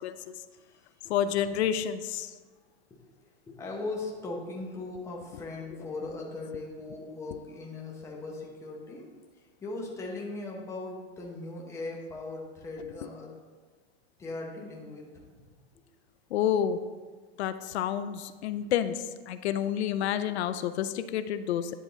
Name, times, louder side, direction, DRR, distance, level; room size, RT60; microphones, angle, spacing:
voice 1, 0.0-0.4 1.0-2.4 16.3-16.8 17.4-21.7, left 9 dB, 85° left, 11 dB, 0.5 m, -29 dB
voice 2, 0.5-1.2 3.5-9.1 9.4-13.3 14.2-15.4, left 2 dB, 10° left, -2 dB, 0.8 m, -39 dB
10.0 x 3.6 x 4.0 m, 1.4 s
supercardioid pair, 160°, 32 cm